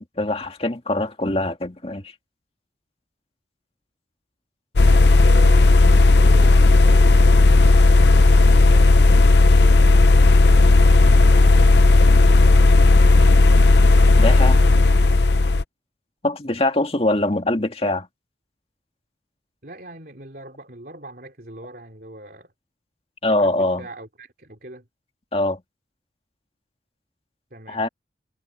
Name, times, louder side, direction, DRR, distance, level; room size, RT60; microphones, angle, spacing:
voice 1, 0.2-2.1 14.2-14.6 16.2-18.1 23.2-23.9 25.3-25.6 27.7-27.9, left 2 dB, 30° left, 2.0 m, -23 dB
sound 1, 4.8-15.6, left 2 dB, 70° left, 0.7 m, -13 dB
voice 2, 4.9-7.7 8.6-10.0 10.4-11.8 19.6-22.5 23.2-24.9 27.5-27.8, right 1 dB, 50° right, 3.3 m, -40 dB
head